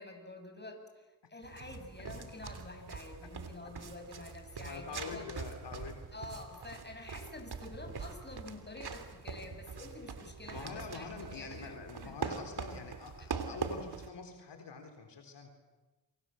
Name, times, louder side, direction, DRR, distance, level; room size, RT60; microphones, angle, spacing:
voice 1, 0.0-5.2 6.1-11.7 12.0-12.3 13.2-13.6, left 2 dB, 25° left, 5 dB, 7.3 m, -48 dB
sound 1, 1.4-14.1, right 5 dB, 60° right, 3.2 m, -43 dB
voice 2, 4.6-6.0 10.5-15.5, left 5 dB, 75° left, 5 dB, 3.9 m, -45 dB
29.0 x 26.0 x 7.8 m, 1.1 s
cardioid pair, 55°, 43 cm